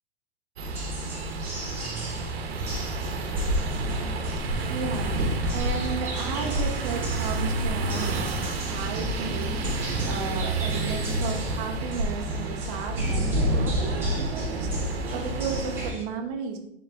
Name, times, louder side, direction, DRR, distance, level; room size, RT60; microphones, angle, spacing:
sound 1, 0.6-16.0, right 2 dB, 5° right, 0.9 m, -41 dB
sound 2, 0.6-15.9, right 1 dB, 85° right, 0.7 m, -28 dB
voice 1, 4.6-5.1 5.5-16.6, right 5 dB, 30° right, 3 dB, 0.5 m, -34 dB
3.7 x 3.3 x 3.4 m, 0.77 s
hypercardioid pair, 155°, 30 cm